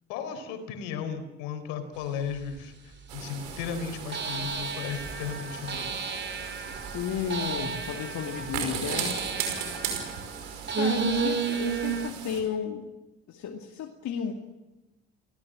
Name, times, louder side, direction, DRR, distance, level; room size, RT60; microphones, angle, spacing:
voice 1, 0.1-6.1 9.5-9.6, left 7 dB, 75° left, 8 dB, 4.4 m, -35 dB
sound 1, 2.5-2.6 4.1-12.1, right 5 dB, 35° right, 2.7 m, -32 dB
sound 2, 3.1-12.4, right 7 dB, 80° right, 5.6 m, -37 dB
voice 2, 6.9-9.2 10.8-12.9 13.3-14.3, left 7 dB, 60° left, 3 dB, 2.6 m, -33 dB
29.5 x 18.5 x 7.6 m, 1.0 s
hypercardioid pair, 65°, 33 cm